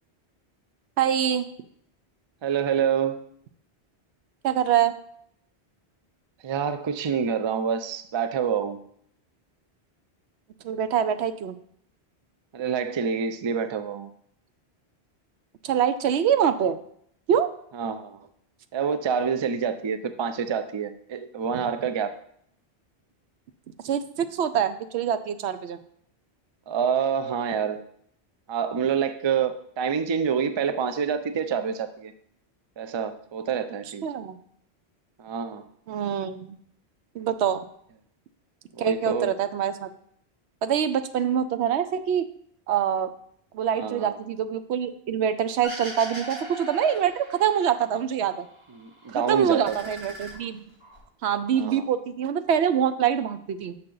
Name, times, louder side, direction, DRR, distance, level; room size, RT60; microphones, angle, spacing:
voice 1, 1.0-1.5 4.4-4.9 10.6-11.5 15.6-16.8 17.3-17.5 23.8-25.8 34.0-34.4 35.9-36.6 37.1-37.6 38.8-39.9 40.6-42.3 42.7-43.1 43.5-48.5 49.1-50.6 51.2-53.8, right 8 dB, 90° right, 11 dB, 0.9 m, -25 dB
voice 2, 2.4-3.2 6.4-8.9 12.5-14.1 17.7-18.3 18.7-22.1 26.7-27.8 28.5-32.1 32.8-34.1 35.2-35.7 38.7-39.3 43.7-44.2 48.8-49.7 51.6-51.9, right 7 dB, 45° right, 10 dB, 0.3 m, -27 dB
sound 1, 45.6-48.0 48.3-49.1 49.5-51.0, right 1 dB, 70° right, 2.6 m, -39 dB
6.6 x 5.9 x 3.8 m, 0.67 s
omnidirectional pair, 1.1 m